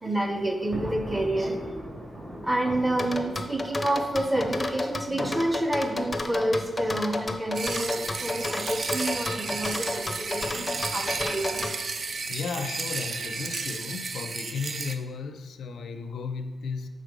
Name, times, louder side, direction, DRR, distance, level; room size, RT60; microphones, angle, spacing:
voice 1, 0.0-1.6 2.4-11.7, right 1 dB, 15° right, 5 dB, 0.7 m, -28 dB
Thunder, 0.5-4.6, right 1 dB, 35° right, 1.8 m, -40 dB
sound 1, 3.0-11.7, left 2 dB, 20° left, 0.5 m, -31 dB
sound 2, 7.5-14.9, right 4 dB, 50° right, 0.4 m, -33 dB
voice 2, 12.3-16.9, left 5 dB, 80° left, 9 dB, 0.4 m, -34 dB
6.5 x 3.7 x 5.1 m, 1.3 s
wide cardioid pair, 120°, 0 cm